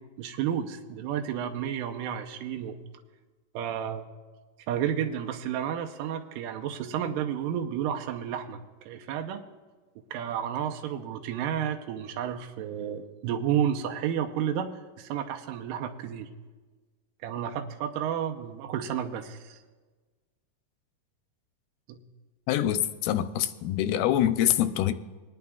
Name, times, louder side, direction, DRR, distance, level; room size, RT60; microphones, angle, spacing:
voice 1, 0.2-2.8 3.5-4.1 4.7-9.4 10.1-14.7 15.0-16.3 17.2-19.6 21.9-22.0, right 9 dB, 80° right, 2.2 m, -31 dB
voice 2, 22.5-24.9, left 11 dB, 90° left, 2.4 m, -25 dB
23.5 x 9.7 x 2.3 m
omnidirectional pair, 4.1 m